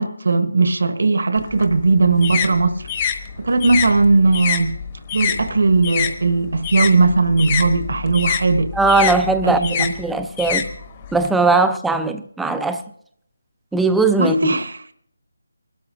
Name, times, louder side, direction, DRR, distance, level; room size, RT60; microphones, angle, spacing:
voice 1, 0.0-2.8 3.4-4.8 5.1-8.7 9.4-9.9 14.2-14.7, right 3 dB, 65° right, 1.2 m, -18 dB
sound 1, 1.4-6.1 6.4-11.3, left 8 dB, 25° left, 1.1 m, -25 dB
voice 2, 8.7-10.7 11.1-12.8 13.7-14.6, right 3 dB, 5° right, 0.5 m, -19 dB
22.5 x 13.0 x 2.6 m
figure-of-eight pair, 165°, 0 cm